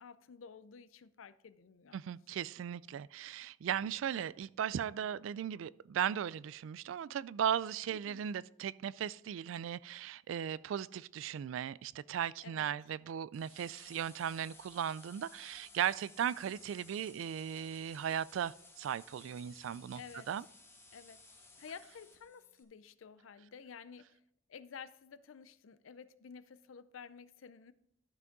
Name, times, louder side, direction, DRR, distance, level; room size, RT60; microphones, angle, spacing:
voice 1, 0.0-2.0 8.1-8.2 12.4-12.7 20.0-20.3 20.9-21.2 21.6-24.2 24.5-27.7, left 6 dB, 90° left, 0.5 m, -52 dB
voice 2, 1.9-20.0 20.3-20.4, right 9 dB, 75° right, 0.3 m, -37 dB
sound 1, 13.3-22.6, left 3 dB, 15° left, 1.1 m, -58 dB
12.0 x 5.9 x 3.9 m
head